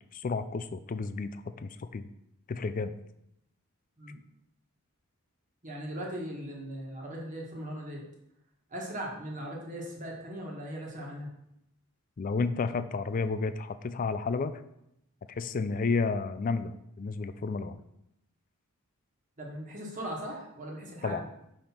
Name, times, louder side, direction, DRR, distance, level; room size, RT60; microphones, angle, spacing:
voice 1, 0.1-2.1 2.5-2.9 12.2-14.6 15.3-17.8 21.0-21.2, left 4 dB, 40° left, 12 dB, 0.3 m, -31 dB
voice 2, 5.6-8.0 8.7-11.3 19.4-21.3, right 1 dB, 35° right, -2 dB, 1.4 m, -39 dB
5.7 x 5.2 x 4.4 m, 0.80 s
head